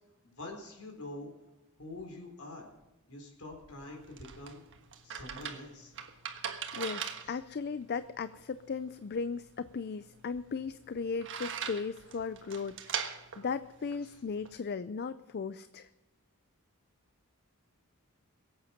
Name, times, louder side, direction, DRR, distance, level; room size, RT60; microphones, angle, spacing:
voice 1, 0.2-1.3 1.8-2.7 3.1-4.7 5.0-5.9 7.2-7.4 14.0-14.2, left 2 dB, 75° left, 2 dB, 4.1 m, -45 dB
sound 1, 3.7-14.6, right 7 dB, 55° right, 1.4 m, -42 dB
voice 2, 6.7-15.9, left 5 dB, 45° left, 13 dB, 0.4 m, -37 dB
22.0 x 8.7 x 5.8 m, 1.0 s
head